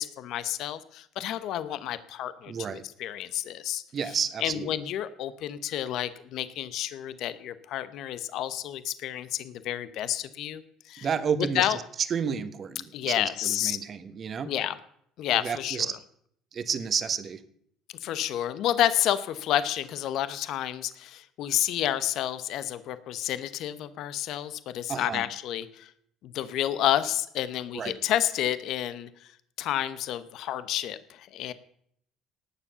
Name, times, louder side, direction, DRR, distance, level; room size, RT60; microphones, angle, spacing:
voice 1, 0.0-3.8 4.4-10.6 10.9-11.1 11.5-11.8 12.9-13.8 14.4-14.8 15.2-15.8 18.0-25.9 26.2-29.1 29.6-31.5, left 12 dB, 65° left, 14 dB, 1.0 m, -30 dB
voice 2, 2.5-2.8 3.9-4.7 11.0-11.7 12.1-14.5 15.3-16.0 16.5-17.4 24.9-25.2 27.7-27.9, right 6 dB, 40° right, 11 dB, 1.3 m, -31 dB
18.5 x 7.3 x 6.9 m, 0.69 s
cardioid pair, 115°, 0 cm